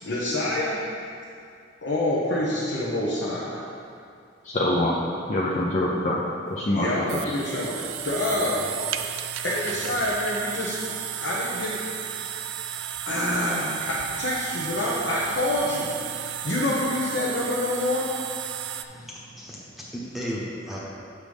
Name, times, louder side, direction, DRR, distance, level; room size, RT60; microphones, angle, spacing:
voice 1, 0.0-0.8 1.8-3.6 6.7-8.7 9.4-11.8 12.1-12.3 13.1-15.9 16.4-18.1, left 1 dB, 65° left, -7 dB, 1.0 m, -27 dB
voice 2, 4.4-5.0 5.3-7.2, left 1 dB, 40° left, -5 dB, 0.6 m, -25 dB
sound 1, 6.5-18.8, right 10 dB, 90° right, 0.4 m, -34 dB
voice 3, 18.9-20.8, equal, ahead, -6 dB, 1.0 m, -35 dB
8.0 x 6.2 x 3.5 m, 2.4 s
head